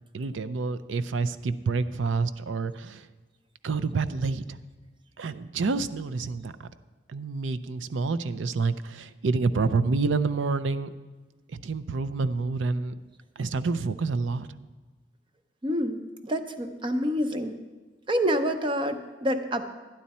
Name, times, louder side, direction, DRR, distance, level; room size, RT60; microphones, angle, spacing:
voice 1, 0.1-3.1 3.6-4.6 5.2-6.5 7.1-10.9 11.5-13.0 13.4-14.5, right 4 dB, 85° right, 13 dB, 0.5 m, -28 dB
voice 2, 15.6-17.6 18.1-19.6, equal, 25° right, 8 dB, 0.7 m, -27 dB
11.5 x 10.5 x 4.2 m, 1.3 s
head